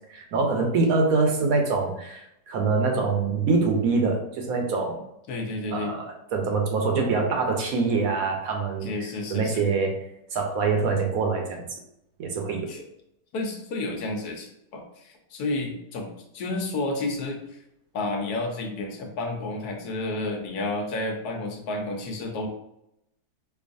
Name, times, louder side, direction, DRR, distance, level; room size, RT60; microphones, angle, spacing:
voice 1, 0.1-5.0 5.7-8.9 9.3-9.9 10.3-11.6 12.2-12.7, right 4 dB, 70° right, 2 dB, 1.0 m, -24 dB
voice 2, 5.3-5.9 8.8-9.7 12.7-12.8 13.3-16.1 16.3-17.6 17.9-22.5, left 2 dB, 80° left, 2 dB, 1.2 m, -31 dB
4.5 x 2.4 x 2.5 m, 0.80 s
omnidirectional pair, 1.7 m